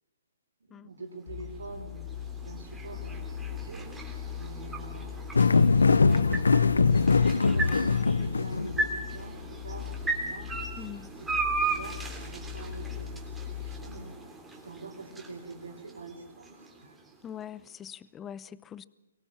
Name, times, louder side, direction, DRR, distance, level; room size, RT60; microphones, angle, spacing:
voice 1, 0.6-2.0 2.4-4.0 4.3-5.4 5.7-10.9 11.2-11.3 11.6-14.2 14.5-17.0, right 3 dB, 80° right, 4.9 m, -44 dB
sound 1, 1.2-17.4, right 3 dB, 10° right, 3.3 m, -37 dB
sound 2, 1.3-14.0, left 8 dB, 50° left, 1.9 m, -40 dB
sound 3, 5.3-8.9, left 4 dB, 85° left, 0.7 m, -22 dB
voice 2, 10.8-11.1 17.2-18.9, left 9 dB, 15° left, 0.7 m, -42 dB
24.0 x 18.5 x 7.3 m
hypercardioid pair, 135°, 0 cm